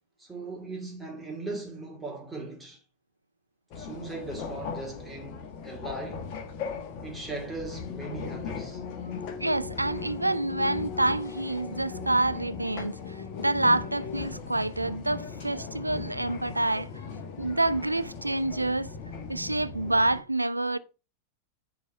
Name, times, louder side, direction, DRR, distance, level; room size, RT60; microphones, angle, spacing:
voice 1, 0.2-2.8 3.7-6.3 7.0-8.8, right 3 dB, 10° right, 2.4 m, -39 dB
sound 1, 3.7-20.2, left 5 dB, 45° left, 1.5 m, -38 dB
voice 2, 9.4-16.9 17.4-18.9 19.3-20.8, right 2 dB, 85° right, 0.5 m, -27 dB
10.0 x 4.1 x 5.2 m
figure-of-eight pair, 90°, 0 cm